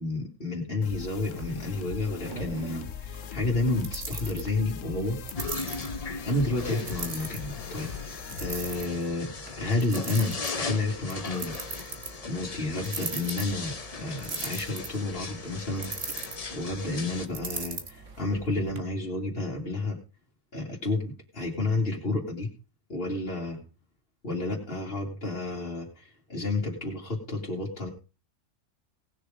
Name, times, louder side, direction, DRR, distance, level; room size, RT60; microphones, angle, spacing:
voice 1, 0.0-5.2 6.3-8.0 8.4-11.9 12.3-15.9 16.2-20.0 20.5-22.5 22.9-23.6 24.2-27.9, left 2 dB, 45° left, -3 dB, 2.7 m, -31 dB
sound 1, 0.8-8.8, left 8 dB, 75° left, 1.2 m, -40 dB
sound 2, 1.3-18.8, right 4 dB, 70° right, 1.9 m, -41 dB
sound 3, 5.4-17.3, left 4 dB, 30° left, 1.0 m, -38 dB
18.0 x 6.7 x 5.0 m, 0.34 s
omnidirectional pair, 1.3 m